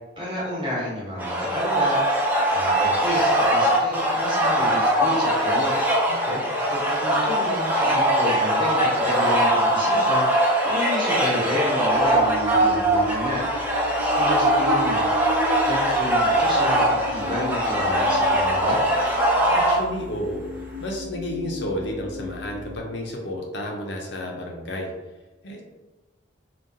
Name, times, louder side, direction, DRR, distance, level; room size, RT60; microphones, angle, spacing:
voice 1, 0.2-2.0 2.5-5.7 6.7-10.3 10.6-13.4 14.1-15.0 15.7-18.9, left 1 dB, 25° right, -6 dB, 0.9 m, -30 dB
sound 1, 1.2-19.8, right 1 dB, 10° right, 0.4 m, -21 dB
voice 2, 6.1-6.4 19.5-20.4 20.8-24.9 25.4-25.6, left 1 dB, 60° left, 0 dB, 0.5 m, -31 dB
sound 2, 11.9-22.8, equal, 70° right, 0.7 m, -35 dB
3.7 x 2.2 x 2.6 m, 1.1 s
head